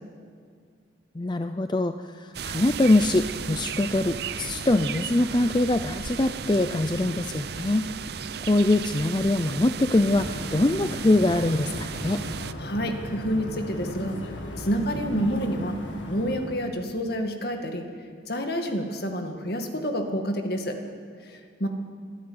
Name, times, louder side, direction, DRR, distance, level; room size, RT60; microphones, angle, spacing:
voice 1, 1.2-7.9 8.5-12.2, left 2 dB, 25° left, 9 dB, 0.5 m, -23 dB
sound 1, 2.3-12.5, right 6 dB, 55° right, 0.6 m, -35 dB
sound 2, 10.1-16.7, equal, 80° left, 2.2 m, -37 dB
voice 2, 12.6-14.2 14.6-15.8 16.1-17.9 18.3-20.8 21.2-21.7, equal, 55° left, 5 dB, 2.1 m, -28 dB
25.5 x 11.5 x 9.6 m, 2.1 s
head